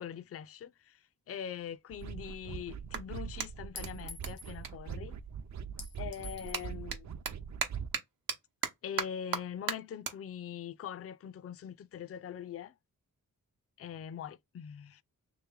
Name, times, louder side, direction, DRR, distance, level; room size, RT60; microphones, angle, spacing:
voice 1, 0.0-5.2 6.0-7.1 8.8-12.7 13.8-15.0, left 9 dB, 45° left, 0.4 m, -43 dB
Clapping, 0.8-0.9 1.6-5.6 5.9-12.6, right 7 dB, 90° right, 0.9 m, -41 dB
sound 1, 1.9-7.9, right 7 dB, 55° right, 0.5 m, -42 dB
Chink clink, 2.0-2.1 3.8-4.6 5.8-6.7, left 5 dB, 85° left, 1.0 m, -48 dB
3.1 x 2.9 x 3.6 m
cardioid pair, 75°, 34 cm